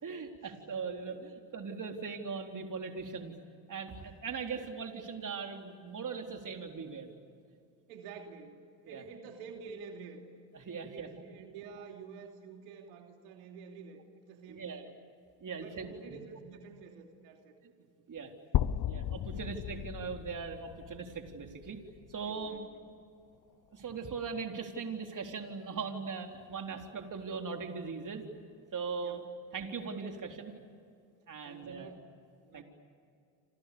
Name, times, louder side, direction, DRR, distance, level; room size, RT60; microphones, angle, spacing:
voice 1, 0.0-3.3 3.7-7.1 8.9-9.0 10.5-11.1 14.5-14.9 15.4-15.9 18.1-18.3 18.9-21.8 22.1-22.6 23.7-28.2 28.7-29.2 29.5-30.5 31.3-31.9 32.5-32.6, right 5 dB, 40° right, 3 dB, 4.1 m, -40 dB
voice 2, 7.9-10.2 10.7-14.0 14.3-14.9 15.6-17.5 17.8-17.9 18.2-18.4 19.3-19.4 22.2-22.8 29.0-29.2 31.4-32.1 32.4-32.6, right 5 dB, 85° right, 3 dB, 2.9 m, -49 dB
sound 1, 18.5-22.5, left 11 dB, 45° left, 0.9 m, -35 dB
28.5 x 27.5 x 7.1 m, 2.4 s
supercardioid pair, 80°, 49 cm